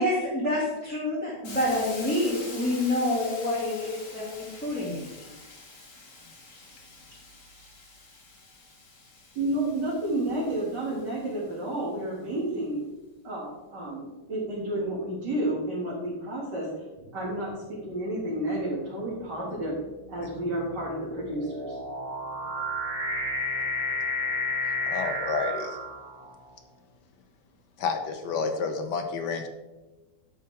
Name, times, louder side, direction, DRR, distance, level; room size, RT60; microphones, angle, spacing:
voice 1, 0.0-5.1, left 1 dB, 5° left, -8 dB, 2.2 m, -27 dB
Hiss, 1.4-11.3, left 3 dB, 50° left, 1.9 m, -46 dB
voice 2, 9.3-12.8 13.2-16.7 17.1-17.5 17.8-19.7 20.1-21.8, right 1 dB, 75° right, -7 dB, 3.0 m, -31 dB
sound 1, 17.0-17.4 18.3-26.5, left 1 dB, 35° right, 1.9 m, -32 dB
voice 3, 24.6-25.8 27.8-29.5, left 5 dB, 75° left, 6 dB, 1.7 m, -30 dB
10.5 x 8.0 x 3.5 m, 1.1 s
omnidirectional pair, 1.9 m